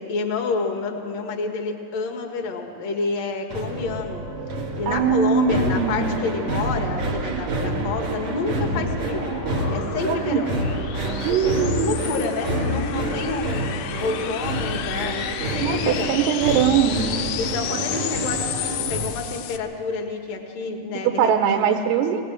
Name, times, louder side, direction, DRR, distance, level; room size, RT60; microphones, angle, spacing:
voice 1, 0.0-4.3 4.8-9.3 9.7-10.5 11.2-16.2 17.4-21.8, left 4 dB, 60° left, 4 dB, 1.9 m, -29 dB
sound 1, 3.5-19.1, right 1 dB, 45° right, 3.0 m, -28 dB
voice 2, 4.9-6.2 10.1-10.5 11.2-12.0 15.6-17.0 21.0-22.2, right 8 dB, 80° right, 5 dB, 2.6 m, -21 dB
sound 2, 8.3-19.6, left 11 dB, 80° left, 3.0 m, -33 dB
22.0 x 18.0 x 7.6 m, 2.6 s
omnidirectional pair, 5.4 m